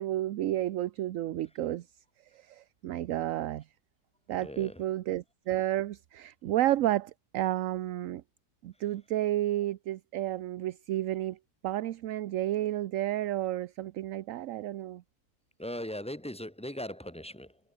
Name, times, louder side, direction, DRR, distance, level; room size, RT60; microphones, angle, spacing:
voice 1, 0.0-1.9 2.3-3.7 4.3-8.2 8.6-11.4 11.6-15.0, right 13 dB, 65° right, 0.9 m, -31 dB
voice 2, 4.3-4.8 15.6-17.6, left 1 dB, 5° left, 2.2 m, -39 dB
omnidirectional pair, 1.7 m